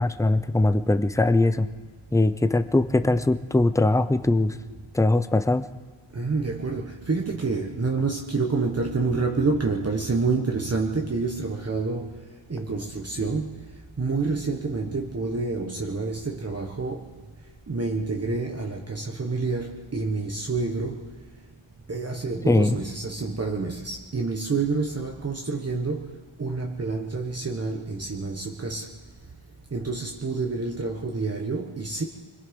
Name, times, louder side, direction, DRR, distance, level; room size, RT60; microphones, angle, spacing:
voice 1, 0.0-1.7 2.1-4.6 4.9-5.6 22.5-22.8, left 2 dB, 5° left, 10 dB, 0.6 m, -21 dB
voice 2, 6.1-13.7 14.0-17.2 17.7-21.1 21.9-28.9 29.7-32.1, right 3 dB, 30° right, 0 dB, 1.4 m, -28 dB
25.0 x 21.0 x 5.3 m, 1.5 s
wide cardioid pair, 160°, 49 cm